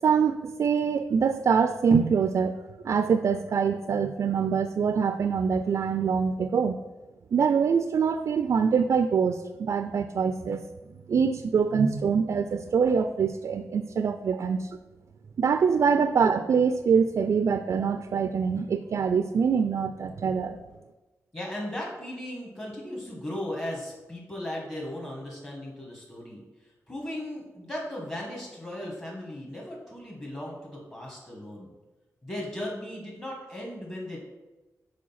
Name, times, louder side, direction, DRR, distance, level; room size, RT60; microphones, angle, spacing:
voice 1, 0.0-2.6 2.8-6.8 7.3-10.6 11.1-14.7 15.4-20.6, right 6 dB, 60° right, 9 dB, 0.3 m, -24 dB
voice 2, 21.3-31.7 32.2-34.2, left 1 dB, 30° left, -3 dB, 1.4 m, -37 dB
5.0 x 4.3 x 5.6 m, 1.1 s
wide cardioid pair, 105°, 6 cm